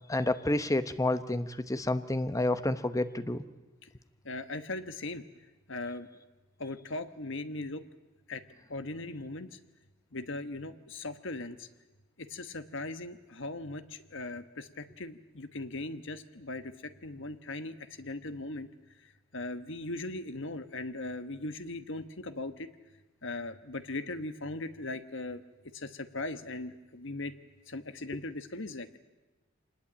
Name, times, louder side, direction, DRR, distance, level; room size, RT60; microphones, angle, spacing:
voice 1, 0.1-3.5, left 1 dB, 15° left, 11 dB, 0.9 m, -29 dB
voice 2, 4.2-5.2 5.7-6.1 6.6-7.8 8.3-8.4 8.7-9.6 10.1-11.7 12.2-18.7 19.3-22.7 23.2-25.4 25.7-27.3 27.7-29.0, left 2 dB, 65° left, 10 dB, 1.3 m, -39 dB
25.5 x 20.0 x 8.7 m, 1.1 s
head